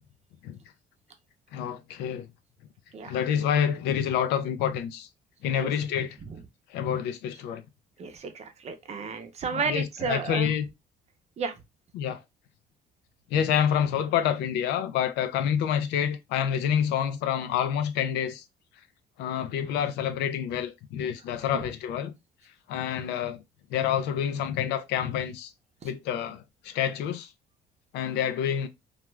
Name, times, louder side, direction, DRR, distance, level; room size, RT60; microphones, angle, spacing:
voice 1, 1.5-2.3 3.0-5.1 5.4-6.2 6.7-7.6 9.5-10.6 11.9-12.2 13.3-18.5 19.2-22.2 22.7-23.4 23.7-25.5 25.8-27.3 27.9-28.7, left 9 dB, 85° left, 0.5 m, -28 dB
voice 2, 2.9-3.2 5.6-5.7 6.3-6.4 8.0-10.5 11.4-11.5 21.3-21.6 25.8-25.9, right 5 dB, 40° right, 0.6 m, -33 dB
2.4 x 2.2 x 3.1 m
cardioid pair, 110°, 17 cm